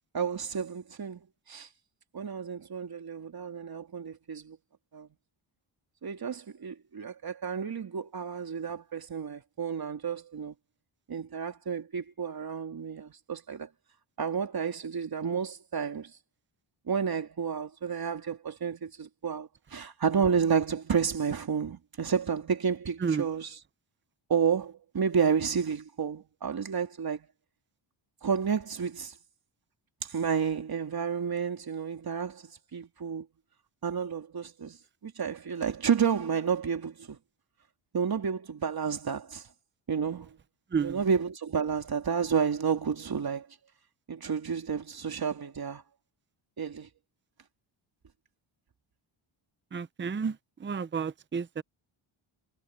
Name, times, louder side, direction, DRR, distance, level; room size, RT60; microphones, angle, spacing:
voice 1, 0.1-1.7 2.1-4.6 4.9-5.1 6.0-10.6 11.1-13.7 14.2-16.1 16.9-23.6 24.3-27.3 28.2-29.1 30.0-33.3 33.8-34.8 35.0-37.2 37.9-39.5 39.9-40.4 40.8-43.5 44.1-45.8 46.6-46.9, right 6 dB, 45° right, 3.7 m, -31 dB
voice 2, 49.7-50.4 50.6-51.6, right 6 dB, 25° right, 0.7 m, -31 dB
cardioid pair, 115°, 49 cm